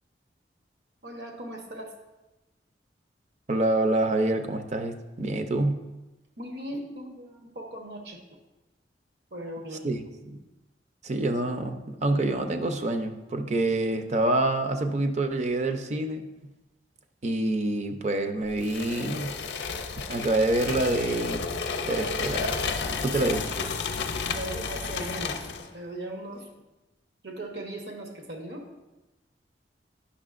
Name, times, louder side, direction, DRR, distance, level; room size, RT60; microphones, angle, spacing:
voice 1, 1.0-1.9 6.4-8.2 9.3-9.9 24.3-26.5 27.2-28.7, right 1 dB, 70° right, 2 dB, 1.0 m, -38 dB
voice 2, 3.5-5.8 9.8-10.4 11.0-16.3 17.2-19.3 20.1-21.6 21.8-22.6 23.0-23.4, right 2 dB, 40° right, 5 dB, 0.6 m, -27 dB
sound 1, 18.6-25.7, left 5 dB, 70° left, 0.5 m, -32 dB
9.8 x 6.3 x 2.5 m, 1.0 s
head